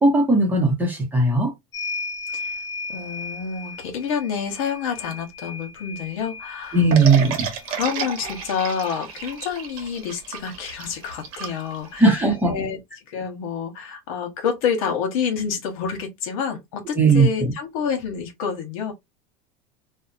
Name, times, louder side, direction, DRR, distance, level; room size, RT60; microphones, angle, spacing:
voice 1, 0.0-1.5 6.7-7.4 12.0-12.5 17.0-17.5, right 3 dB, 10° right, 0.7 m, -17 dB
sound 1, 1.7-9.8 11.1-11.2 11.5-12.6, left 3 dB, 20° left, 0.5 m, -37 dB
voice 2, 2.9-7.2 7.7-12.0 12.5-12.8 13.1-18.9, left 7 dB, 70° left, 1.0 m, -28 dB
sound 2, 6.9-12.2, right 7 dB, 80° right, 1.0 m, -31 dB
2.7 x 2.1 x 2.5 m
supercardioid pair, 160°, 18 cm